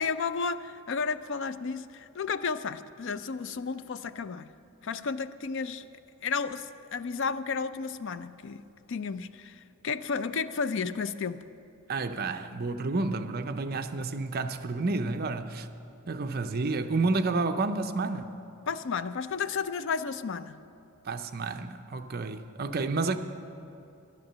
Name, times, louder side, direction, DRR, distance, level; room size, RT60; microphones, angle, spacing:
voice 1, 0.0-4.5 4.8-5.9 6.2-8.6 8.9-11.4 18.7-20.6, left 5 dB, 55° left, 0.4 m, -32 dB
voice 2, 11.9-15.7 16.1-18.4 21.0-23.2, right 3 dB, 45° right, 0.6 m, -30 dB
11.0 x 11.0 x 6.7 m
head